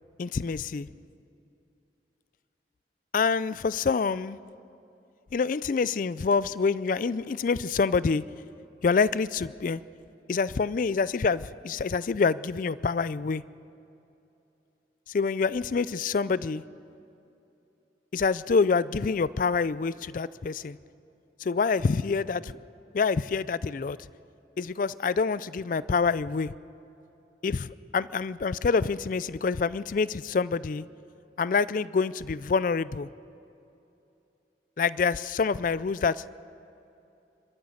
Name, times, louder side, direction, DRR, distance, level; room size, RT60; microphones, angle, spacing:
voice 1, 0.2-0.9 3.1-4.4 5.3-8.2 8.8-9.8 10.3-13.4 15.1-16.6 18.1-20.8 21.4-22.5 22.9-24.0 24.6-26.5 27.4-30.8 31.4-33.1 34.8-36.2, left 5 dB, 50° left, 18 dB, 0.4 m, -26 dB
29.0 x 13.0 x 7.1 m, 2.8 s
head